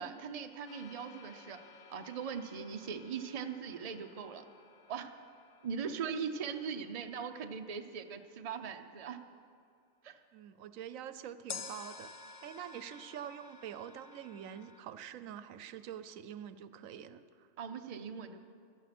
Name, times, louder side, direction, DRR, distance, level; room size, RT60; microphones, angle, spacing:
voice 1, 0.0-1.6 1.9-4.4 4.9-5.1 5.6-9.2 10.0-10.2 17.6-18.4, right 6 dB, 35° right, 6 dB, 0.6 m, -40 dB
sound 1, 0.7-8.6 11.5-14.8, left 5 dB, 45° left, 0.7 m, -52 dB
voice 2, 10.3-12.1 12.4-17.5, right 9 dB, 80° right, 13 dB, 1.0 m, -46 dB
15.5 x 12.0 x 6.0 m, 2.3 s
omnidirectional pair, 1.4 m